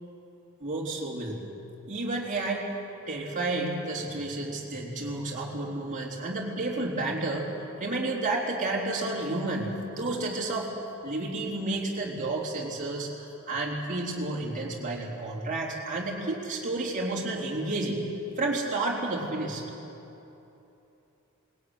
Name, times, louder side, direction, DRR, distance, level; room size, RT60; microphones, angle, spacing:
voice 1, 0.6-1.4 1.9-2.7 3.1-7.5 7.8-10.7 11.0-18.1 18.4-19.6, right 2 dB, 35° right, -3 dB, 3.6 m, -31 dB
20.0 x 17.5 x 9.6 m, 3.0 s
head